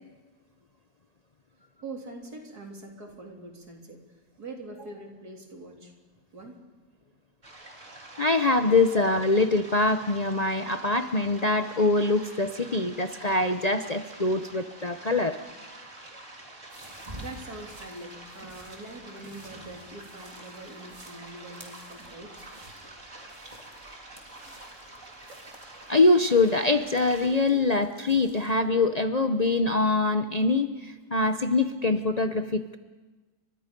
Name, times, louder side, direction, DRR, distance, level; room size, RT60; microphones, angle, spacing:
voice 1, 1.8-4.0 4.4-5.9 6.3-6.6 8.7-8.8 17.2-22.5, right 2 dB, 80° right, 1 dB, 3.9 m, -43 dB
sound 1, 7.4-27.3, right 2 dB, 50° right, 3.7 m, -47 dB
voice 2, 8.2-15.4 25.9-32.8, left 2 dB, 35° left, 7 dB, 0.7 m, -24 dB
sound 2, 16.7-28.6, equal, 20° right, 3.5 m, -52 dB
30.0 x 25.0 x 5.3 m, 1.2 s
omnidirectional pair, 1.6 m